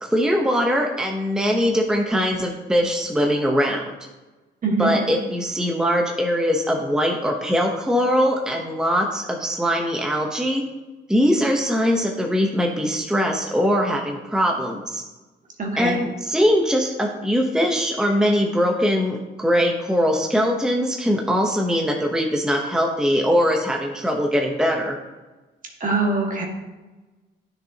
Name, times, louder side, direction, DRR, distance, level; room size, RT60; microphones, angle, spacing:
voice 1, 0.0-3.8 4.8-10.6 11.1-15.0 15.8-25.0, equal, 5° right, 0 dB, 0.9 m, -21 dB
voice 2, 15.6-16.0 25.8-26.4, right 3 dB, 40° right, 0 dB, 1.8 m, -23 dB
10.0 x 6.4 x 2.9 m, 1.2 s
cardioid pair, 90°, 20 cm